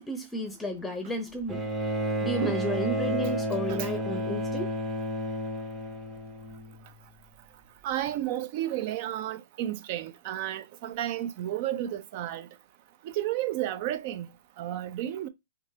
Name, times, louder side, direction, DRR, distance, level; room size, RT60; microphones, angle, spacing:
voice 1, 0.0-1.6 2.2-4.7, equal, 10° left, 0.7 m, -32 dB
Bowed string instrument, 1.5-7.0 8.1-8.2, right 1 dB, 15° right, 1.0 m, -31 dB
voice 2, 7.8-12.5 13.0-14.3 14.6-15.3, right 12 dB, 45° right, 0.5 m, -32 dB
3.7 x 2.8 x 2.8 m
hypercardioid pair, 125°, 0 cm